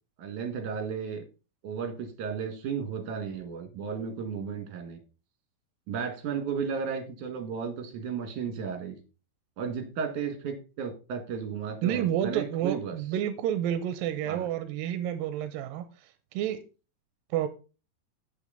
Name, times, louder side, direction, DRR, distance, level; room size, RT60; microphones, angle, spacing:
voice 1, 0.2-1.2 1.6-5.0 5.9-8.9 9.6-13.0 14.3-14.5, right 6 dB, 65° right, 3.3 m, -34 dB
voice 2, 11.8-15.9 16.3-16.6 17.3-17.5, right 10 dB, 90° right, 2.4 m, -29 dB
8.3 x 8.2 x 4.0 m
omnidirectional pair, 4.0 m